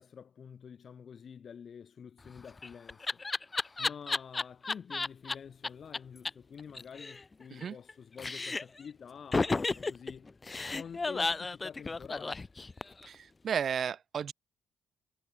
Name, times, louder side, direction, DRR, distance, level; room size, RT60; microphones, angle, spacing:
voice 1, 0.0-3.2 3.8-10.3 10.7-12.5, left 7 dB, 50° left, 4.4 m, -48 dB
Laughter, 2.2-5.3 5.6-5.7 5.9-6.0 6.3-6.4 6.6-7.9 8.2-8.8 9.3-13.1, left 3 dB, 25° left, 0.8 m, -33 dB
voice 2, 13.1-14.3, right 7 dB, 55° right, 0.4 m, -33 dB
cardioid pair, 90°, 0 cm